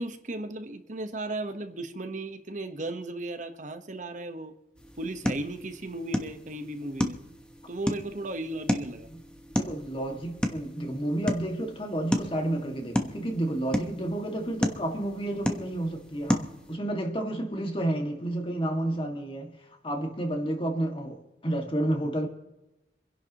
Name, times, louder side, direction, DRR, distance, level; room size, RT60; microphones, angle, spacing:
voice 1, 0.0-4.5 5.0-7.2 7.7-9.1, right 2 dB, 45° right, 1.3 m, -35 dB
sound 1, 4.8-16.8, equal, 5° left, 1.1 m, -33 dB
voice 2, 9.6-19.5 19.8-22.3, right 1 dB, 30° left, 2.1 m, -31 dB
27.0 x 11.0 x 3.1 m
head